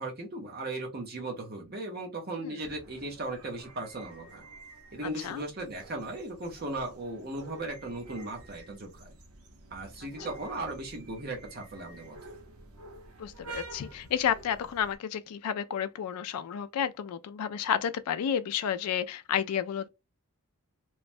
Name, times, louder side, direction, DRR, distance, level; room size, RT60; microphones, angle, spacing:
voice 1, 0.0-4.5 4.9-9.2 9.7-12.3, right 2 dB, 45° right, 0.6 m, -37 dB
sound 1, 2.6-15.0, right 3 dB, 80° right, 0.7 m, -49 dB
voice 2, 13.2-19.9, left 8 dB, 90° left, 0.3 m, -31 dB
3.0 x 2.1 x 2.5 m
head